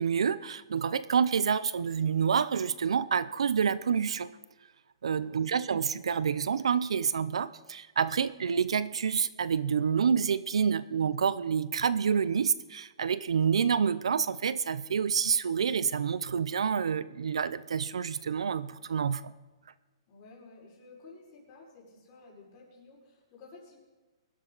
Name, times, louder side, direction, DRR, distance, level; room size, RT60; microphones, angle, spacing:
voice 1, 0.0-4.3 5.0-19.3, right 7 dB, 90° right, 17 dB, 0.6 m, -28 dB
voice 2, 5.2-5.5 20.1-23.7, left 3 dB, 30° left, -3 dB, 5.4 m, -53 dB
22.5 x 12.0 x 4.0 m, 1.2 s
hypercardioid pair, 155°, 3 cm